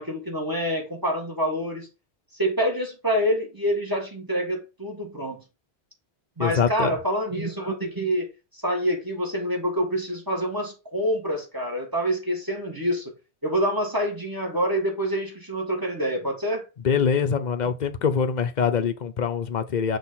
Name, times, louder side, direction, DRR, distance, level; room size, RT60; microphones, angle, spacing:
voice 1, 0.0-1.9 2.3-5.4 6.4-13.1 13.4-16.6, equal, 20° right, 1.7 m, -27 dB
voice 2, 6.4-6.9 16.8-20.0, left 6 dB, 50° left, 0.8 m, -24 dB
6.2 x 3.4 x 5.6 m
omnidirectional pair, 1.1 m